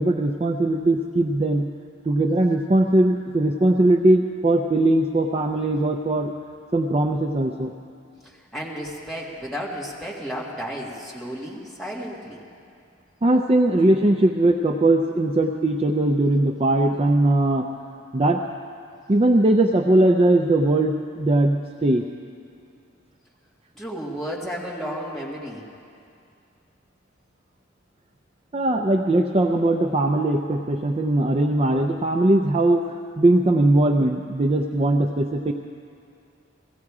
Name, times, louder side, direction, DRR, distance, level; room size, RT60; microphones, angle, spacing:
voice 1, 0.0-1.7 2.1-6.3 6.7-7.7 13.2-17.7 18.1-18.4 19.1-22.0 28.5-35.5, right 1 dB, 30° right, 3 dB, 0.4 m, -20 dB
voice 2, 8.2-12.4 23.8-25.7, equal, ahead, -5 dB, 1.9 m, -33 dB
16.5 x 15.0 x 4.8 m, 2.4 s
head